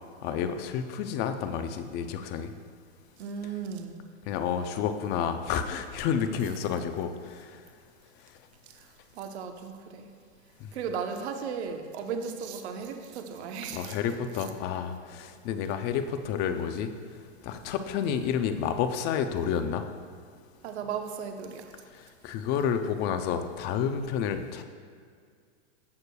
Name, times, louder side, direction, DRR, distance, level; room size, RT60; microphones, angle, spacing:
voice 1, 0.2-2.5 4.3-7.6 10.6-10.7 13.7-16.9 17.4-19.8 21.9-24.6, left 7 dB, 30° left, 8 dB, 0.5 m, -30 dB
voice 2, 3.2-4.0 8.7-8.8 9.1-10.1 10.7-14.0 20.6-21.7, right 6 dB, 65° right, 5 dB, 1.0 m, -36 dB
16.5 x 6.5 x 2.3 m, 2.1 s
hypercardioid pair, 135°, 35 cm